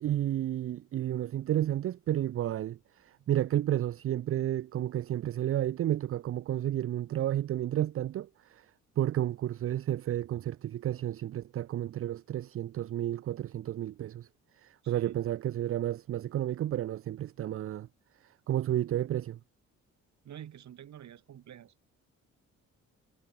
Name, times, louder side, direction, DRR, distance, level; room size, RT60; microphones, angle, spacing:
voice 1, 0.0-8.7 9.0-14.3 14.6-17.9 18.5-19.4, right 12 dB, 50° right, 0.5 m, -31 dB
voice 2, 14.8-15.2 20.2-21.7, right 10 dB, 65° right, 7.0 m, -47 dB
cardioid pair, 90°, 30 cm